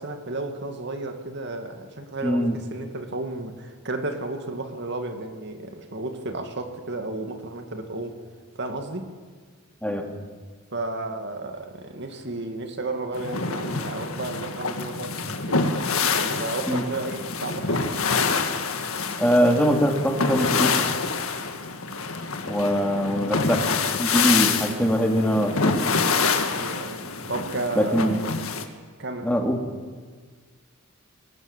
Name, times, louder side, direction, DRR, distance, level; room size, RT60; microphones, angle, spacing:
voice 1, 0.0-8.2 8.5-9.1 10.7-15.8 16.2-18.0 26.5-27.0 27.3-28.1 29.0-29.4, right 2 dB, 50° right, 6 dB, 2.4 m, -33 dB
voice 2, 2.2-2.6 9.8-10.1 16.7-16.8 19.2-20.8 22.5-23.6 24.0-25.8 27.8-28.2 29.2-29.6, equal, 5° left, 2 dB, 2.6 m, -22 dB
sound 1, 13.1-28.6, left 4 dB, 70° left, 1.8 m, -26 dB
24.5 x 19.5 x 7.4 m, 1.5 s
head